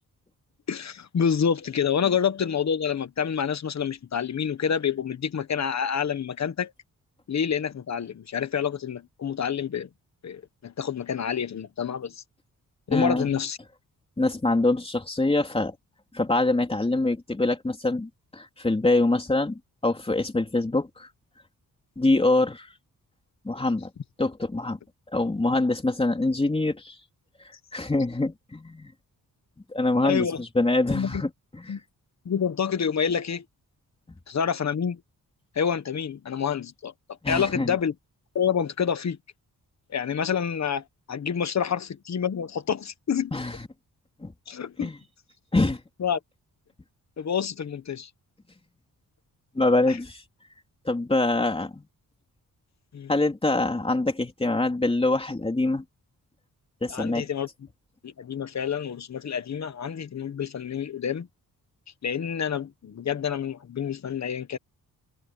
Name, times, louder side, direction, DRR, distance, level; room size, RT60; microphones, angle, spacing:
voice 1, 0.7-6.7 7.3-9.9 10.2-12.2 12.9-13.6 30.0-30.4 30.9-31.2 31.7-31.8 32.2-33.4 34.3-35.0 35.5-36.9 37.3-37.9 38.3-39.2 39.9-43.3 44.5-44.9 46.0-46.2 47.2-48.1 49.9-50.0 52.9-53.1 56.9-57.5 58.0-61.3 62.0-64.6, left 7 dB, 50° left, 1.3 m, -28 dB
voice 2, 12.9-13.3 14.2-15.7 16.1-21.1 22.0-22.7 23.4-23.9 24.2-24.8 25.1-26.9 27.7-28.9 29.7-31.7 37.2-37.7 43.3-43.6 44.2-44.3 44.8-45.0 45.5-45.8 49.5-50.2 50.8-51.8 53.1-55.8 56.8-57.3, left 2 dB, 15° left, 3.4 m, -24 dB
wide cardioid pair, 150°, 35 cm